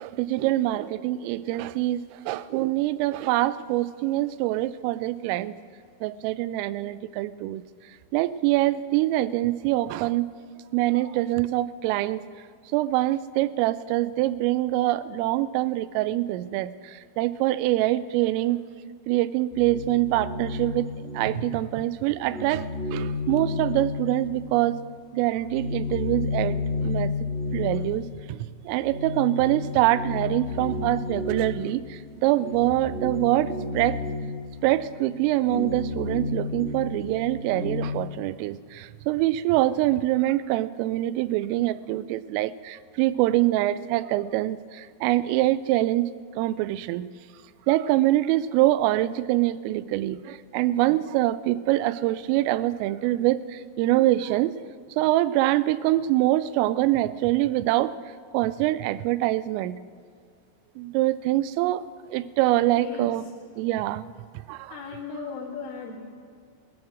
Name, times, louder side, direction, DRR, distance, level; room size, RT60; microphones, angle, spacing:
voice 1, 0.0-5.5 6.0-7.6 8.1-10.3 10.7-12.2 12.7-18.6 19.1-20.9 21.1-24.8 25.1-27.1 27.5-34.0 34.6-46.1 46.4-47.1 47.7-54.6 55.0-58.0 58.3-59.8 60.8-61.8 62.1-63.2 63.6-64.1 64.5-64.8, right 15 dB, 90° right, 16 dB, 3.2 m, -24 dB
sound 1, 19.5-21.8 22.1-24.8 25.2-38.1, left 3 dB, 25° left, 1.3 m, -32 dB
voice 2, 62.8-63.1 64.7-66.0, left 5 dB, 80° left, -3 dB, 4.7 m, -36 dB
17.0 x 11.0 x 6.3 m, 2.1 s
omnidirectional pair, 5.8 m